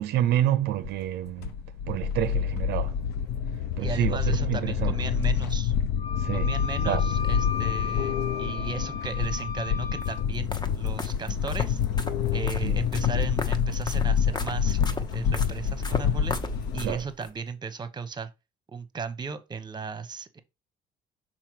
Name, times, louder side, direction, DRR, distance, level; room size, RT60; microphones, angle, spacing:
voice 1, 0.0-1.6 1.9-3.0 3.8-5.0 6.2-6.6 6.8-7.0 12.6-12.7 16.8-17.1, right 12 dB, 75° right, 0.5 m, -28 dB
sound 1, 0.8-16.8, left 7 dB, 85° left, 0.8 m, -27 dB
voice 2, 3.8-5.7 6.3-11.8 12.3-16.4 16.7-18.3 18.7-20.4, right 5 dB, 25° right, 0.9 m, -36 dB
Wind instrument woodwind instrument, 6.0-10.2, left 6 dB, 45° left, 1.7 m, -35 dB
sound 2, 10.0-17.3, left 3 dB, 25° left, 0.8 m, -36 dB
5.8 x 4.2 x 4.7 m
cardioid pair, 110°, 17 cm